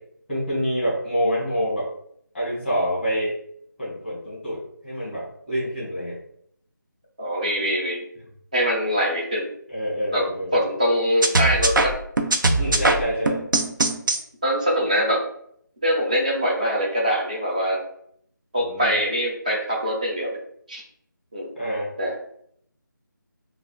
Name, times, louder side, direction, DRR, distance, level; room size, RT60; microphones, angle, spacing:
voice 1, 0.3-1.9 2.3-3.3 3.8-6.2 9.7-10.5 12.6-13.4 18.6-18.9 21.5-21.9, equal, ahead, -8 dB, 1.1 m, -26 dB
voice 2, 7.2-8.0 8.5-9.5 10.1-10.3 10.5-12.0 12.7-13.0 14.4-15.2 15.8-17.8 18.5-20.4 20.7-20.8 21.3-21.6 22.0-22.2, equal, 20° right, -2 dB, 0.5 m, -23 dB
sound 1, 11.2-14.2, right 2 dB, 75° right, 0.5 m, -21 dB
3.3 x 2.4 x 2.3 m, 0.69 s
figure-of-eight pair, 175°, 11 cm